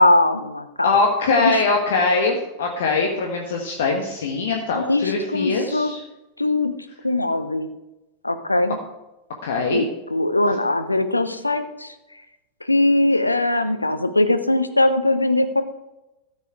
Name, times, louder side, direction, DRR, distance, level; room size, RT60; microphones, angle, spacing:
voice 1, 0.0-0.9 1.4-1.6 4.7-5.9 6.4-6.7 7.0-7.7 8.2-8.8 9.7-11.9 12.7-15.6, left 2 dB, 85° left, 9 dB, 0.8 m, -20 dB
voice 2, 0.8-6.0 9.4-9.8, left 3 dB, 60° left, 1 dB, 1.4 m, -22 dB
13.5 x 7.4 x 4.6 m, 0.98 s
figure-of-eight pair, 90°, 0 cm